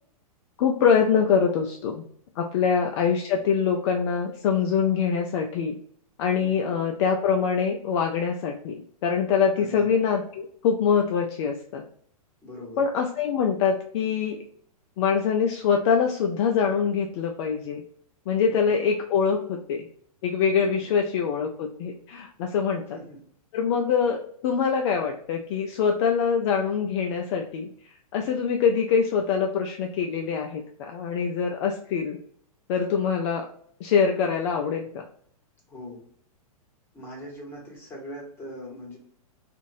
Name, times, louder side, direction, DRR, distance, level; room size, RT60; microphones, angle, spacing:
voice 1, 0.6-2.1 2.4-5.8 6.2-11.8 12.8-14.4 15.0-17.8 18.3-19.8 20.2-22.8 23.5-27.7 28.1-32.2 32.7-33.5 33.8-35.0, left 6 dB, 50° left, 3 dB, 0.4 m, -24 dB
voice 2, 6.4-6.7 9.5-9.9 12.4-12.8 18.5-18.6 20.6-20.9 22.9-23.2 35.7-36.0 36.9-39.0, left 1 dB, 10° left, -3 dB, 1.4 m, -41 dB
2.5 x 2.5 x 3.1 m, 0.62 s
hypercardioid pair, 125°, 19 cm